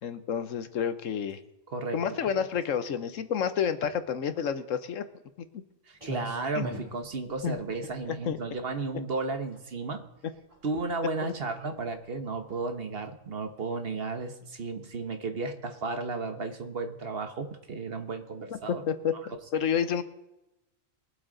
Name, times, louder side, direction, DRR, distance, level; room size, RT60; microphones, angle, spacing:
voice 1, 0.0-1.4 1.9-5.0 6.5-6.7 7.4-7.6 8.0-8.4 18.5-18.6 18.9-20.0, left 7 dB, 70° left, 11 dB, 1.2 m, -29 dB
voice 2, 1.7-2.0 2.3-2.4 5.9-10.1 10.6-18.8, right 3 dB, 50° right, 8 dB, 1.2 m, -34 dB
Clock, 5.9-13.4, equal, 25° right, 3.0 m, -45 dB
21.5 x 8.0 x 3.9 m, 0.96 s
omnidirectional pair, 1.4 m